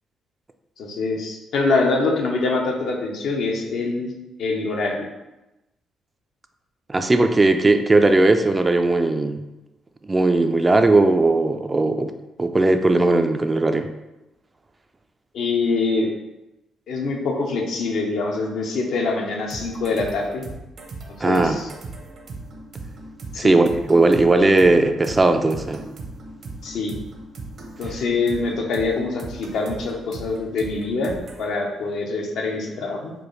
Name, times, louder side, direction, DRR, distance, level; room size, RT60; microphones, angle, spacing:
voice 1, 0.8-4.1 4.4-5.1 15.3-16.1 16.9-20.4 21.2-21.7 23.3-23.6 26.6-27.0 27.8-33.1, left 3 dB, 75° left, 1 dB, 0.7 m, -24 dB
voice 2, 6.9-9.4 10.0-12.1 12.4-13.9 21.2-21.6 23.4-25.8, right 2 dB, 20° right, 7 dB, 0.3 m, -18 dB
sound 1, 19.4-31.5, right 2 dB, 60° right, 0.7 m, -38 dB
4.6 x 2.3 x 3.1 m, 0.98 s
cardioid pair, 90°, 0 cm